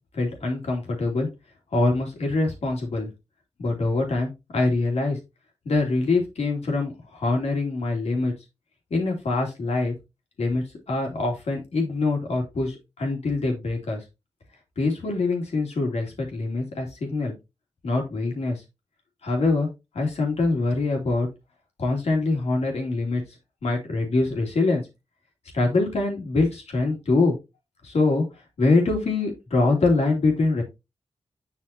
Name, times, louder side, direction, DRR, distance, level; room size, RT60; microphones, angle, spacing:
voice 1, 0.1-1.3 1.7-3.1 3.6-5.2 5.6-8.3 8.9-9.9 10.4-14.0 14.8-17.3 17.8-18.6 19.2-19.7 19.9-21.3 21.8-23.2 23.6-24.8 25.5-27.3 27.8-28.2 28.6-30.6, left 3 dB, 75° left, 1 dB, 3.1 m, -24 dB
8.0 x 5.8 x 2.9 m, 0.24 s
cardioid pair, 70°, 11 cm